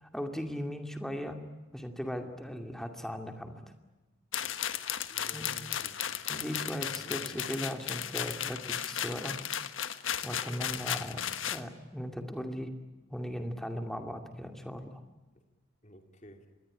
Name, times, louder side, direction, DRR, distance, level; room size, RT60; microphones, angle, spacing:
voice 1, 0.0-1.4 1.7-3.6 5.3-5.5 6.3-9.4 10.2-12.7 13.1-15.0, equal, ahead, 5 dB, 2.4 m, -38 dB
sound 1, 4.3-11.6, left 9 dB, 75° left, 1.4 m, -35 dB
voice 2, 5.1-6.2 6.5-7.4 15.8-16.5, equal, 35° left, 5 dB, 2.9 m, -53 dB
25.5 x 21.0 x 10.0 m, 1.1 s
head